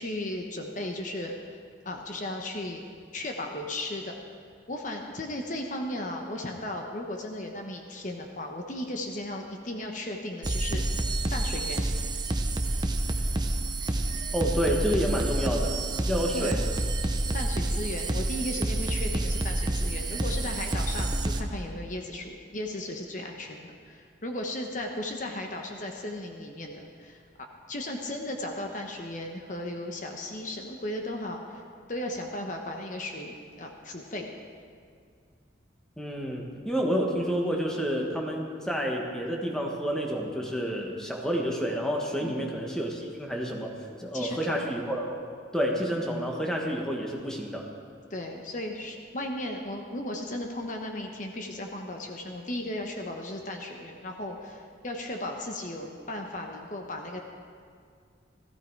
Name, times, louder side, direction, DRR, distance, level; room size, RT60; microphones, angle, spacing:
voice 1, 0.0-1.6 1.8-2.8 3.1-4.2 4.7-10.8 11.3-11.9 16.3-16.6 17.3-27.2 27.7-31.6 31.9-34.3 42.2-42.5 44.1-44.6 48.1-57.2, left 1 dB, 45° left, 2 dB, 1.0 m, -36 dB
sound 1, 10.4-21.4, right 2 dB, 25° right, 0.7 m, -28 dB
voice 2, 14.3-15.8 16.1-16.6 36.0-45.2 45.5-47.7, equal, 5° left, 0 dB, 1.4 m, -29 dB
16.0 x 14.5 x 4.6 m, 2.2 s
head